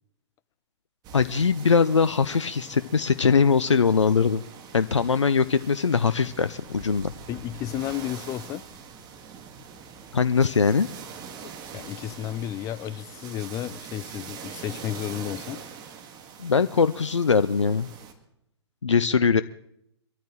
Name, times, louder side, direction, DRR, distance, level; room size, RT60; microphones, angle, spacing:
sound 1, 1.0-18.1, right 6 dB, 25° right, 1.7 m, -43 dB
voice 1, 1.1-4.4 4.7-7.1 10.1-10.9 16.4-17.9 18.8-19.4, left 5 dB, 85° left, 0.5 m, -21 dB
voice 2, 7.3-8.6 11.4-15.6, left 12 dB, 20° left, 0.4 m, -33 dB
24.5 x 13.0 x 3.1 m
figure-of-eight pair, 115°, 15 cm